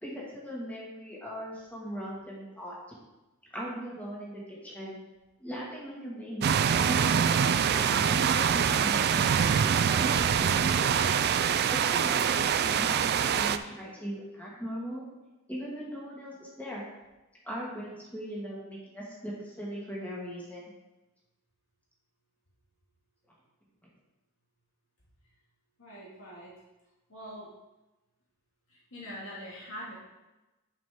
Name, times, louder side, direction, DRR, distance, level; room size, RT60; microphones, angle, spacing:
voice 1, 0.0-2.8 3.5-5.0 5.4-6.5 6.9-9.2 9.8-11.2 11.7-15.0 15.5-16.9 17.4-20.7, equal, 5° left, -5 dB, 1.9 m, -39 dB
sound 1, 6.4-13.6, right 7 dB, 50° right, 0.3 m, -25 dB
voice 2, 25.8-26.5 27.1-27.5 28.7-29.9, equal, 70° left, -6 dB, 2.1 m, -43 dB
10.0 x 5.2 x 3.7 m, 1.0 s
head